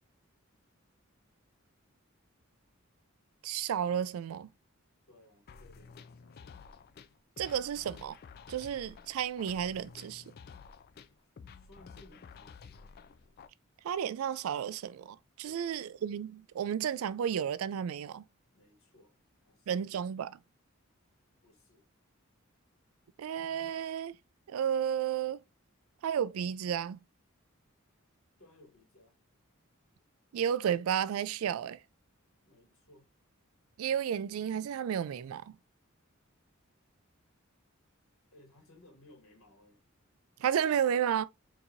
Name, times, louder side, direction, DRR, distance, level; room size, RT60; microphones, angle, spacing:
voice 1, 3.4-4.5 7.4-8.2 8.5-10.2 13.8-18.2 19.7-20.4 23.2-24.2 24.5-25.4 26.0-27.0 30.3-31.8 33.8-35.6 40.4-41.2, right 8 dB, 85° right, 0.3 m, -32 dB
voice 2, 5.1-6.8 11.5-12.8 15.4-15.8 18.5-19.1 19.4-19.8 21.4-21.9 28.4-29.2 32.4-33.1 38.3-39.8 40.5-40.6 41.1-41.2, left 1 dB, 90° left, 2.2 m, -60 dB
sound 1, 5.5-13.5, left 5 dB, 50° left, 0.3 m, -52 dB
4.5 x 2.8 x 2.6 m
head